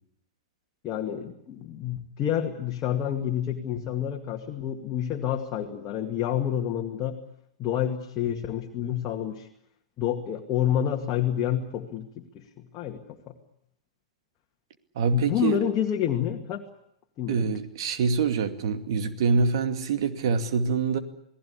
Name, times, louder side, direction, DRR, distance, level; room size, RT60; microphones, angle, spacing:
voice 1, 0.8-7.2 7.6-9.5 10.0-13.0 15.1-16.6 17.2-17.5, left 10 dB, 30° left, 1 dB, 2.2 m, -28 dB
voice 2, 15.0-15.6 17.3-21.0, right 5 dB, 50° right, 8 dB, 2.4 m, -25 dB
28.5 x 19.0 x 8.5 m, 0.76 s
figure-of-eight pair, 100°, 3 cm